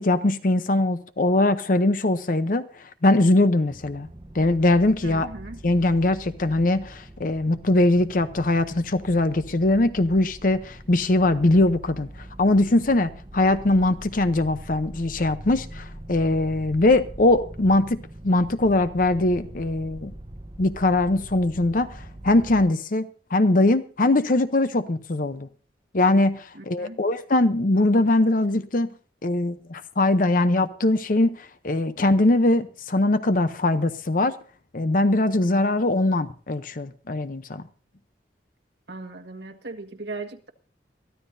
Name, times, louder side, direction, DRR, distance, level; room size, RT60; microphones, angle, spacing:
voice 1, 0.0-4.1 4.3-5.3 5.6-12.1 12.4-18.0 18.2-20.1 20.6-25.5 25.9-28.9 29.2-34.4 34.7-37.6, left 2 dB, 50° left, 0.7 m, -21 dB
sound 1, 3.7-22.7, right 1 dB, 30° right, 0.9 m, -42 dB
voice 2, 5.0-5.6 26.5-27.0 38.9-40.5, right 3 dB, 75° right, 1.6 m, -37 dB
22.5 x 14.5 x 2.7 m
head